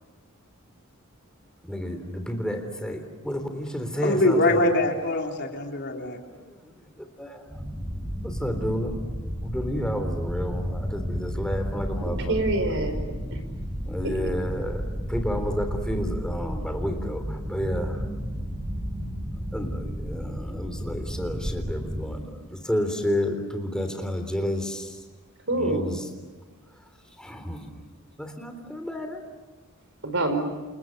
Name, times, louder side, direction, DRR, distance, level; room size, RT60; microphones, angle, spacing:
voice 1, 1.6-4.6 6.3-7.5 8.2-9.0 9.4-12.5 13.9-14.8 15.1-18.0 19.5-25.0 25.5-26.1 27.2-27.7 28.2-29.2, equal, 5° left, 5 dB, 3.6 m, -31 dB
voice 2, 4.0-6.2, left 1 dB, 50° left, 1 dB, 3.9 m, -23 dB
sound 1, 7.5-22.1, equal, 15° right, 5.8 m, -32 dB
voice 3, 12.0-13.0 13.3-13.4 14.0-14.1 25.5-25.8 30.0-30.4, right 2 dB, 60° right, 8 dB, 5.1 m, -26 dB
29.5 x 29.0 x 6.7 m, 1.3 s
head